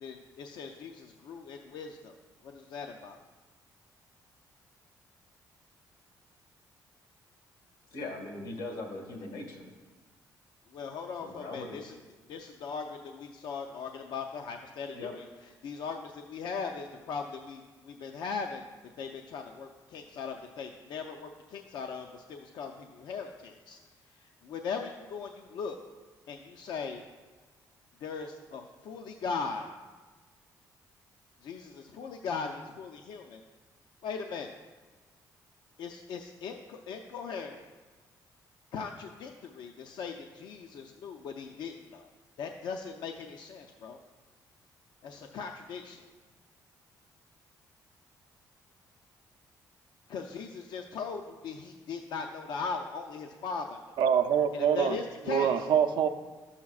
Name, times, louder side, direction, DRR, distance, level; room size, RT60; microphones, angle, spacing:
voice 1, 0.0-2.1 2.4-3.2 10.7-12.0 12.3-15.3 15.6-18.6 19.0-23.8 24.2-25.8 26.3-27.0 28.0-29.7 31.4-33.4 34.0-34.5 35.8-37.6 38.7-42.1 42.4-44.0 45.0-46.1 50.1-53.8 54.7-55.5, left 5 dB, 75° left, 4 dB, 0.5 m, -39 dB
voice 2, 7.9-9.7 11.2-11.8 14.9-15.1, left 2 dB, 90° left, 1 dB, 1.9 m, -40 dB
voice 3, 54.0-55.0 55.2-56.1, right 8 dB, 85° right, 8 dB, 0.5 m, -25 dB
12.5 x 7.1 x 2.4 m, 1.3 s
cardioid pair, 115°, 7 cm